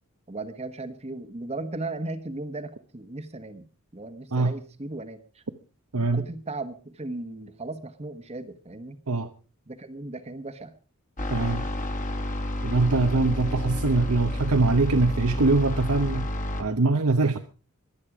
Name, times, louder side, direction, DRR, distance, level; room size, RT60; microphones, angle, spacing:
voice 1, 0.3-3.7 3.9-5.4 6.1-9.0 9.7-10.8, right 2 dB, 30° right, 1.2 m, -36 dB
voice 2, 5.9-6.3 9.1-9.3 11.3-11.7 12.6-16.3 16.6-17.4, right 3 dB, 80° right, 1.0 m, -23 dB
sound 1, 11.2-16.6, left 1 dB, 35° left, 2.1 m, -30 dB
24.0 x 8.6 x 4.9 m
head